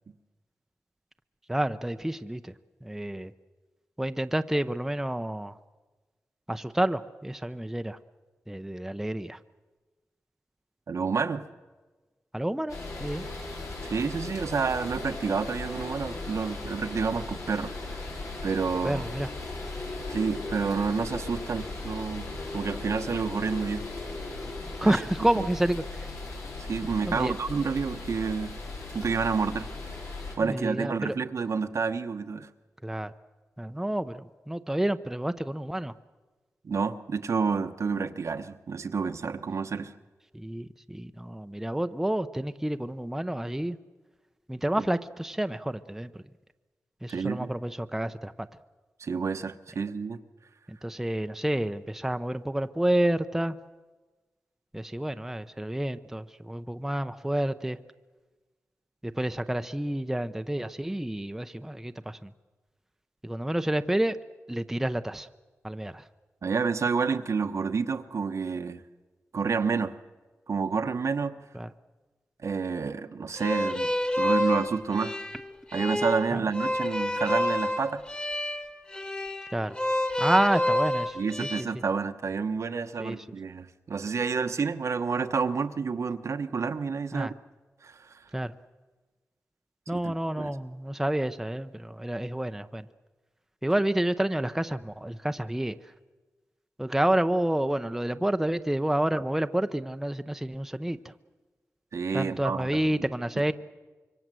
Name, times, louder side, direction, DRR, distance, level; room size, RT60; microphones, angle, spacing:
voice 1, 1.5-2.5 2.8-3.3 4.0-5.6 6.5-8.0 8.5-9.4 12.3-13.2 18.8-19.3 24.8-26.1 27.1-27.3 30.4-31.1 32.8-33.1 33.6-35.9 40.3-43.8 44.5-46.2 47.0-48.5 50.7-53.6 54.7-57.8 59.0-62.3 63.2-64.2 64.5-65.3 65.6-66.0 71.5-71.7 76.3-76.4 79.5-79.8 80.2-81.5 83.0-83.2 87.1-87.3 88.3-88.5 89.9-92.9 93.6-95.8 96.8-101.1 102.1-103.5, right 1 dB, 5° right, 9 dB, 0.7 m, -29 dB
voice 2, 10.9-11.4 13.9-18.1 18.4-19.0 20.1-23.9 24.8-25.0 25.3-25.5 26.7-28.5 28.9-29.7 30.4-32.5 36.6-39.9 47.1-47.5 49.0-50.2 66.4-68.8 69.3-69.9 70.5-71.4 72.4-75.2 75.7-78.0 81.1-87.3 87.8-88.2 89.9-90.5 101.9-103.0, right 5 dB, 70° right, 8 dB, 1.1 m, -29 dB
sound 1, 12.7-30.4, left 2 dB, 85° left, 5.9 m, -37 dB
sound 2, 73.4-81.6, left 1 dB, 20° left, 1.8 m, -29 dB
25.5 x 23.5 x 7.7 m, 1.3 s
wide cardioid pair, 105°, 5 cm